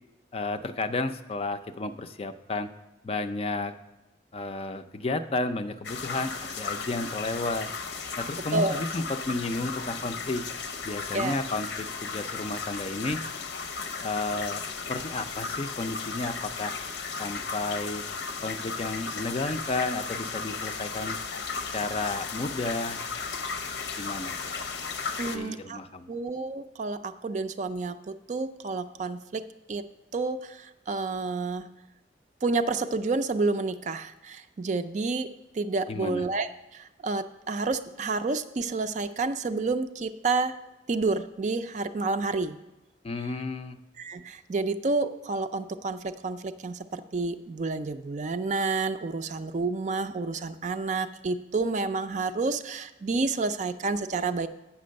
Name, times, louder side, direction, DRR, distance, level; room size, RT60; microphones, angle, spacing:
voice 1, 0.3-2.7 3.0-3.7 4.3-7.7 8.2-10.4 10.8-13.2 14.0-14.6 14.9-16.7 17.2-18.0 18.4-21.2 21.7-23.0 24.0-24.7 25.2-26.1 35.9-36.3 43.0-43.8, left 2 dB, 35° left, 10 dB, 0.4 m, -32 dB
sound 1, 5.8-25.4, left 5 dB, 85° left, 0.8 m, -35 dB
voice 2, 8.5-8.8 11.1-11.4 25.2-25.8 26.1-29.4 29.7-29.8 30.1-31.7 32.4-40.6 40.9-42.6 44.0-54.5, right 3 dB, 40° right, 11 dB, 0.4 m, -29 dB
8.5 x 5.9 x 6.3 m, 1.0 s
head